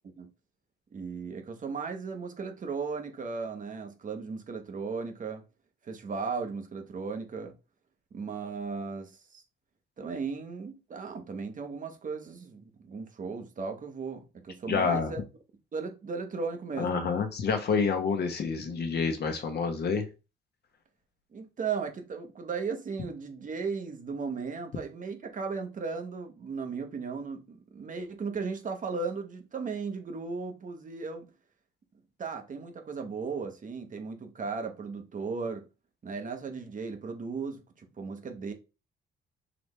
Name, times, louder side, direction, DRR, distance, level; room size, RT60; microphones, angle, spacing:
voice 1, 0.9-5.4 5.9-7.5 8.1-9.4 10.0-15.2 15.7-17.0 21.3-31.3 32.2-35.7 36.0-38.5, right 5 dB, 40° right, 0.9 m, -36 dB
voice 2, 14.7-15.1 16.8-20.1, left 5 dB, 55° left, 1.0 m, -28 dB
4.0 x 3.3 x 3.2 m
cardioid pair, 90°, 20 cm